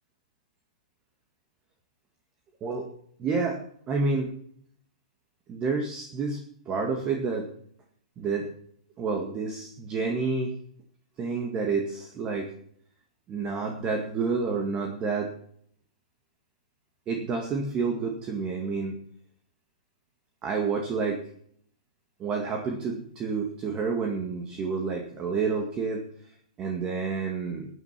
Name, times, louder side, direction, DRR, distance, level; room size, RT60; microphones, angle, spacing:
voice 1, 3.2-3.6 3.9-4.3 5.5-6.4 6.7-7.5 8.2-8.5 9.0-10.5 11.2-12.5 13.3-15.3 17.1-19.0 20.4-21.2 22.2-26.0 26.6-27.7, right 4 dB, 25° right, 3 dB, 2.0 m, -29 dB
13.0 x 9.9 x 5.9 m, 0.62 s
hypercardioid pair, 140°, 4 cm